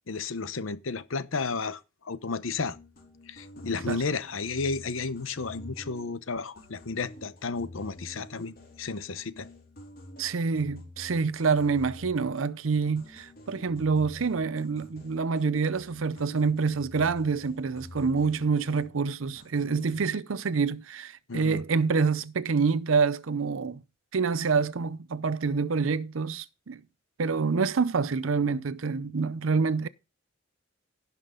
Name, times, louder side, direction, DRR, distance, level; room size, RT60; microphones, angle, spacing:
voice 1, 0.1-2.8 3.3-9.5 21.3-21.6, left 4 dB, 90° left, 0.9 m, -33 dB
sound 1, 2.4-6.2 6.6-12.7 13.0-19.1 19.4-20.0, left 1 dB, 50° left, 3.9 m, -48 dB
voice 2, 10.2-23.8 24.1-26.8 27.2-29.9, right 5 dB, 85° right, 0.6 m, -27 dB
16.5 x 5.9 x 3.8 m
head